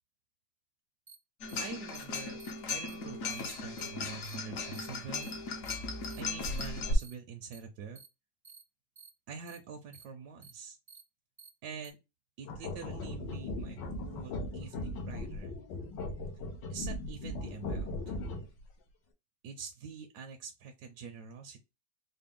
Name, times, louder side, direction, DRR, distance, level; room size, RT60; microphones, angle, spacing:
sound 1, 1.1-1.2 1.5-1.6 1.9-2.0 2.4-2.5 2.9-3.0 3.3-3.4 3.8-3.9 4.2-4.3 4.7-4.9 5.2-5.3 5.6-5.7 6.1-6.2 6.6-6.7 7.0-7.1 7.5-7.6 7.9-8.1 8.4-8.6 8.9-9.1 9.5-9.6 9.9-10.0 10.4-10.5 10.9-11.0 11.4-11.5 11.8-11.9, right 5 dB, 30° right, 0.5 m, -53 dB
sound 2, 1.4-7.0, left 3 dB, 60° left, 1.0 m, -37 dB
voice 1, 1.6-2.4 2.7-5.4 6.2-8.0 9.3-10.8 11.6-12.0 12.4-15.6 16.7-18.1 19.4-21.6, right 6 dB, 70° right, 3 dB, 1.2 m, -45 dB
sound 3, 12.4-18.6, left 2 dB, 85° left, 1.6 m, -38 dB
4.3 x 2.1 x 3.6 m, 0.24 s
omnidirectional pair, 1.9 m